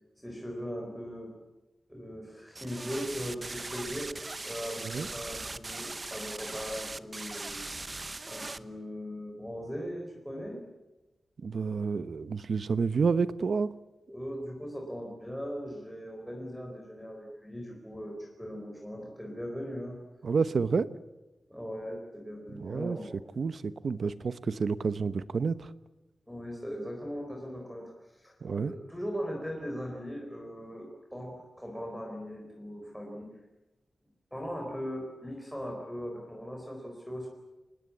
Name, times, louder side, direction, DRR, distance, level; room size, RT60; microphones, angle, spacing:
voice 1, 0.2-1.4 1.9-4.2 4.5-7.6 8.2-10.6 14.1-20.0 21.5-23.2 26.3-33.3 34.3-37.3, equal, ahead, 0 dB, 4.3 m, -39 dB
sound 1, 2.6-8.6, right 2 dB, 25° right, 0.9 m, -39 dB
voice 2, 11.4-13.7 20.2-20.9 22.5-23.0 23.4-25.7 28.4-28.7, right 5 dB, 60° right, 14 dB, 1.0 m, -29 dB
26.5 x 20.0 x 8.6 m, 1.1 s
wide cardioid pair, 150°, 0 cm